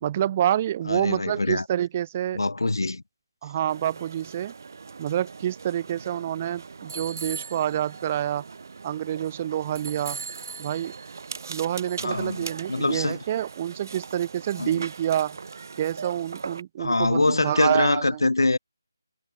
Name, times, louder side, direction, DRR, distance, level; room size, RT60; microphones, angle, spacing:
voice 1, 0.0-2.4 3.4-4.5 5.0-8.4 8.8-10.2 10.6-10.9 11.5-15.4 15.8-18.2, right 11 dB, 25° right, 0.5 m, -27 dB
voice 2, 0.9-1.6 2.3-3.0 12.0-13.2 14.6-14.8 16.8-18.6, left 2 dB, 85° left, 0.8 m, -24 dB
sound 1, 3.7-16.6, right 5 dB, 50° right, 3.1 m, -40 dB
figure-of-eight pair, 160°, 2 cm